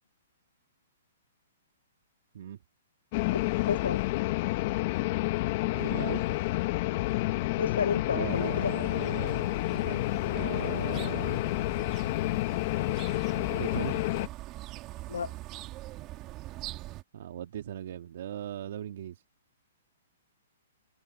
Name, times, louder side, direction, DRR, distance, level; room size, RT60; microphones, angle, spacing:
sound 1, 3.1-14.3, left 19 dB, 40° left, 0.8 m, -29 dB
voice 1, 3.7-4.0 7.6-8.9 15.1-15.3, left 6 dB, 90° left, 0.5 m, -31 dB
voice 2, 5.7-6.4 8.1-11.4 13.4-14.0 17.1-19.2, right 10 dB, 60° right, 1.7 m, -39 dB
sound 2, 8.3-17.0, right 17 dB, 25° right, 2.3 m, -44 dB
open air
hypercardioid pair, 155°, 0 cm